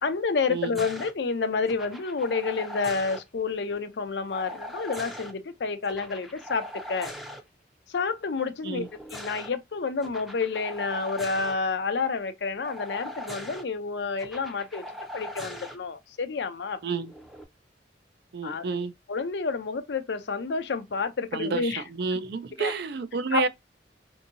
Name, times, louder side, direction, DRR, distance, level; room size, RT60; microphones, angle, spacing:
voice 1, 0.0-7.1 7.9-14.8 15.1-17.0 18.4-21.8 22.1-22.2 22.6-22.7 23.3-23.4, left 4 dB, 70° left, 0.5 m, -29 dB
sound 1, 0.7-1.1 1.7-3.2 4.3-5.3 5.8-7.4 8.7-9.5 10.0-11.6 12.6-13.6 14.2-15.8 17.0-17.4, equal, ahead, 0.5 m, -40 dB
voice 2, 18.3-18.9 21.3-23.5, right 4 dB, 65° right, 0.4 m, -30 dB
2.7 x 2.7 x 2.6 m
head